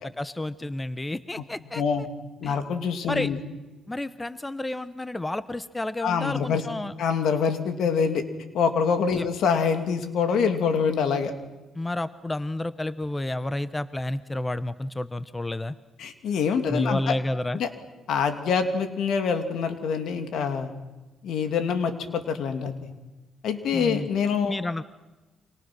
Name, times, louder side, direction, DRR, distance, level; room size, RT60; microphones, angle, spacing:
voice 1, 0.0-1.8 2.4-2.6 3.1-3.3 3.9-6.9 9.2-9.3 11.8-15.7 16.7-17.6 23.7-24.1 24.5-24.8, left 1 dB, 15° left, 14 dB, 0.8 m, -30 dB
voice 2, 1.7-2.1 2.4-3.4 6.0-6.6 7.0-8.2 8.5-11.3 16.0-17.1 17.5-17.7 18.1-20.7 21.2-22.9 23.4-24.6, left 6 dB, 75° left, 7 dB, 2.7 m, -25 dB
29.0 x 26.0 x 6.2 m, 1.1 s
cardioid pair, 90°, 0 cm